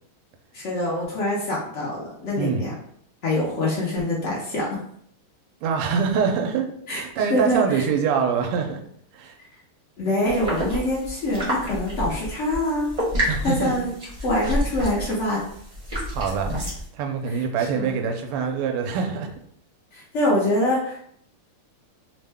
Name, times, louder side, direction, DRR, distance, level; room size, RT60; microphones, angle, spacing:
voice 1, 0.5-2.7 3.2-4.7 6.9-7.0 7.3-7.8 10.0-12.9 13.2-13.9 14.2-15.4 17.7-18.0 19.9-21.0, left 1 dB, 70° left, -6 dB, 0.6 m, -24 dB
voice 2, 5.6-8.8 9.1-9.3 13.3-13.7 16.1-16.5 16.9-19.3, right 6 dB, 85° right, 3 dB, 1.5 m, -24 dB
sound 1, 10.3-16.8, equal, 30° right, 0.6 m, -29 dB
3.5 x 2.1 x 3.4 m, 0.66 s
omnidirectional pair, 2.4 m